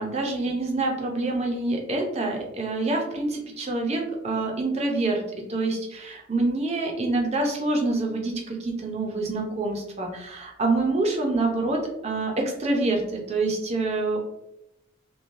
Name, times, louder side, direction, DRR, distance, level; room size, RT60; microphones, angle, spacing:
voice 1, 0.0-5.2 5.5-14.2, right 2 dB, 30° right, 1 dB, 0.5 m, -26 dB
3.0 x 2.1 x 2.5 m, 0.84 s
head